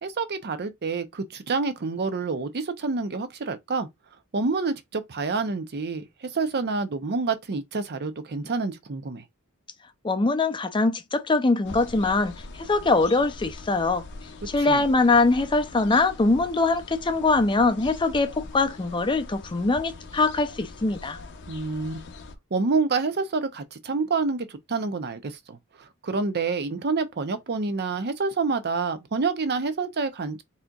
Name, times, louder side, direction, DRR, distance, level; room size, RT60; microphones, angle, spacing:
voice 1, 0.0-3.9 4.3-9.2 14.7-14.8 21.5-22.0 22.5-30.4, right 4 dB, 50° right, 0.6 m, -28 dB
voice 2, 10.0-14.1 14.5-21.2, left 3 dB, 20° left, 0.5 m, -23 dB
sound 1, 11.6-22.3, left 3 dB, 55° left, 0.7 m, -42 dB
4.2 x 3.7 x 2.3 m
head